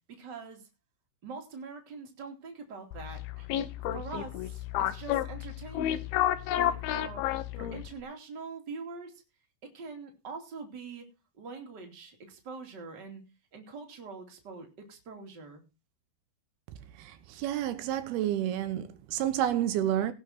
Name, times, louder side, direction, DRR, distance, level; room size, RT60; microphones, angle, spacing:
voice 1, 0.1-0.7 1.2-3.5 3.9-6.1 6.6-7.3 7.6-9.2 9.6-11.1 11.3-13.2 13.5-15.6, right 4 dB, 30° right, 2.5 m, -44 dB
sound 1, 2.9-8.0, left 12 dB, 75° left, 2.5 m, -31 dB
voice 2, 17.0-20.1, right 11 dB, 75° right, 2.6 m, -30 dB
17.5 x 6.5 x 5.7 m
omnidirectional pair, 5.1 m